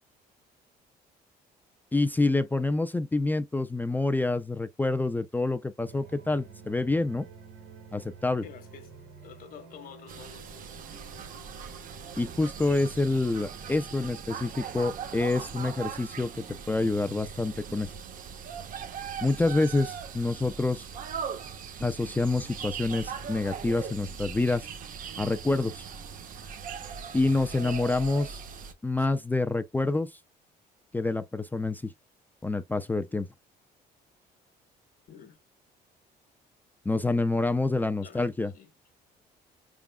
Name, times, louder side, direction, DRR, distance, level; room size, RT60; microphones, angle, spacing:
voice 1, 1.9-7.3 7.9-8.4 12.2-17.9 19.2-20.9 21.8-24.7 25.2-25.9 27.1-28.4 28.8-30.1 30.9-31.9 32.4-33.3 36.9-38.5, left 2 dB, 10° left, 0.3 m, -27 dB
sound 1, 5.9-19.3, right 3 dB, 75° right, 2.0 m, -51 dB
voice 2, 8.4-8.9 9.2-10.5 27.6-27.8 29.0-29.1 35.1-35.4 38.0-38.7, left 7 dB, 55° left, 1.1 m, -48 dB
sound 2, 10.1-28.7, right 7 dB, 55° right, 0.8 m, -40 dB
4.9 x 3.6 x 2.2 m
cardioid pair, 110°, 17 cm